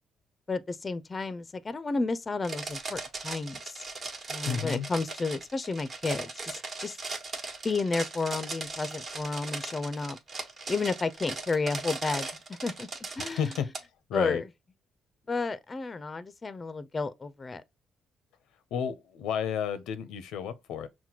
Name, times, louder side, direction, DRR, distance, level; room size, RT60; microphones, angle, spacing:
voice 1, 0.5-3.8 4.3-7.0 7.6-10.2 10.7-12.9 13.2-13.5 14.1-14.4 15.3-17.6, left 3 dB, 30° left, 0.4 m, -32 dB
sound 1, 2.4-13.8, right 3 dB, 45° right, 1.1 m, -38 dB
voice 2, 4.4-4.9 13.2-13.7 14.1-14.4 18.7-20.9, left 8 dB, 90° left, 0.6 m, -32 dB
5.8 x 2.1 x 2.9 m
cardioid pair, 90°, 0 cm